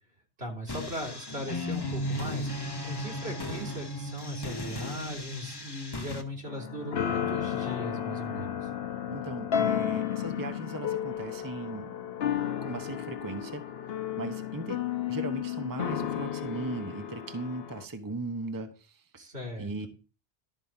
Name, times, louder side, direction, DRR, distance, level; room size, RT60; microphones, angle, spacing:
voice 1, 0.4-2.5 2.8-8.6 19.2-19.9, equal, 70° right, 1 dB, 3.5 m, -38 dB
sound 1, 0.7-6.2, left 1 dB, 20° left, 1.2 m, -36 dB
sound 2, 6.5-17.8, left 9 dB, 65° left, 1.0 m, -33 dB
voice 2, 9.1-11.9 12.6-13.6 14.2-14.8 15.1-19.2 19.6-19.9, right 2 dB, 20° right, 7 dB, 0.9 m, -37 dB
12.5 x 4.6 x 7.2 m, 0.35 s
omnidirectional pair, 1.1 m